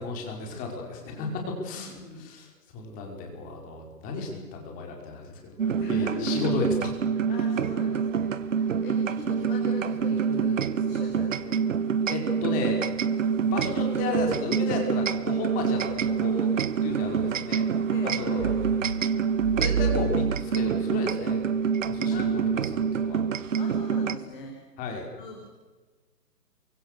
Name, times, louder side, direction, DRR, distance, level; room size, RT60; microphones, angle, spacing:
voice 1, 0.0-5.5 5.9-6.9 12.1-12.8 13.4-16.5 16.8-17.7 18.0-18.6 19.5-21.4 21.9-22.3 22.7-23.2 24.8-25.1, left 3 dB, 15° left, 2 dB, 4.9 m, -33 dB
voice 2, 1.2-2.3 5.8-6.5 7.3-11.8 17.9-18.6 22.1-22.6 23.5-24.6 25.2-25.5, left 2 dB, 35° left, 1 dB, 5.1 m, -40 dB
sound 1, 5.6-24.2, right 6 dB, 50° right, 1.4 m, -26 dB
28.0 x 25.0 x 6.7 m, 1.2 s
hypercardioid pair, 155°, 48 cm